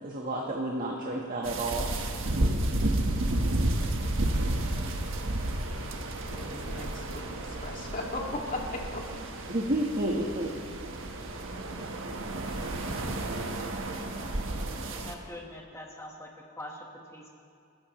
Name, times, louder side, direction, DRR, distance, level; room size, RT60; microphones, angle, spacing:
voice 1, 0.0-1.9 9.5-10.5, right 1 dB, 40° right, -2 dB, 1.4 m, -30 dB
sound 1, 1.4-15.1, right 1 dB, 60° right, 1.4 m, -31 dB
voice 2, 6.3-9.2, left 2 dB, 40° left, -1 dB, 2.3 m, -37 dB
voice 3, 14.9-17.4, left 1 dB, 10° left, 0 dB, 1.4 m, -44 dB
30.0 x 14.5 x 3.2 m, 2.3 s
head